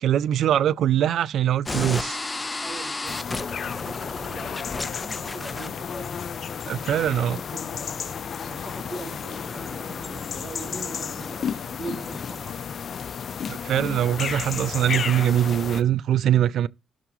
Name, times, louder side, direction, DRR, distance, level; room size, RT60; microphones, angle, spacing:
voice 1, 0.0-2.2 6.7-7.4 13.5-16.7, right 11 dB, 70° right, 0.4 m, -22 dB
sound 1, 1.6-12.3, left 2 dB, 20° left, 0.8 m, -36 dB
voice 2, 2.6-6.2 6.8-8.0 8.4-12.6, right 2 dB, 20° right, 4.0 m, -41 dB
sound 2, 3.1-15.8, left 7 dB, 55° left, 0.5 m, -33 dB
16.0 x 5.9 x 3.0 m
cardioid pair, 90°, 0 cm